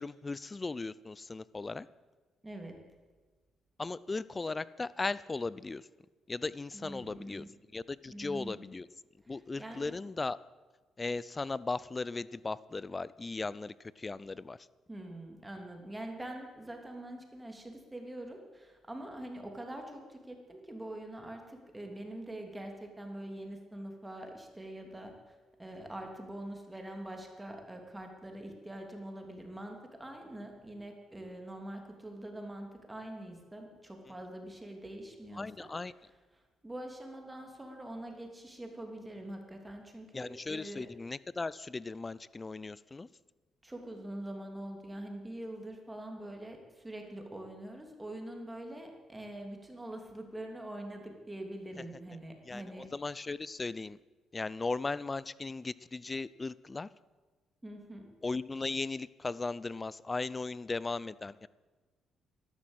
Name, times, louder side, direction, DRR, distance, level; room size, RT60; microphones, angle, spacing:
voice 1, 0.0-1.9 3.8-5.9 6.3-7.4 7.7-8.9 9.3-10.4 11.0-14.6 35.3-35.9 40.1-43.1 52.4-54.0 54.3-56.9 58.2-61.5, left 3 dB, 25° left, 19 dB, 0.5 m, -37 dB
voice 2, 2.4-2.8 6.7-7.5 8.1-8.6 9.2-9.9 14.9-35.7 36.6-40.9 43.6-52.9 57.6-58.1, right 1 dB, 15° right, 3 dB, 3.0 m, -44 dB
12.5 x 12.0 x 8.1 m, 1.3 s
cardioid pair, 90°, 0 cm